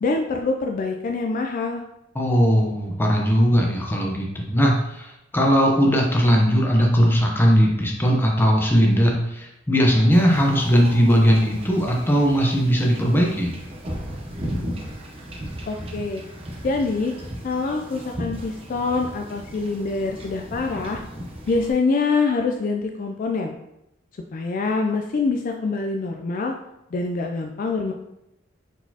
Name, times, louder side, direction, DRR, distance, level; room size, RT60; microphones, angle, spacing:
voice 1, 0.0-1.8 15.7-16.2 16.6-17.1 17.4-21.0 21.5-23.5 24.3-26.5 26.9-27.9, left 3 dB, 45° left, 3 dB, 0.3 m, -25 dB
voice 2, 2.1-13.5, equal, 10° left, -1 dB, 0.7 m, -19 dB
Wind / Ocean / Boat Water vehicle, 10.1-21.7, equal, 30° right, 0.7 m, -36 dB
4.5 x 4.0 x 2.8 m, 0.85 s
head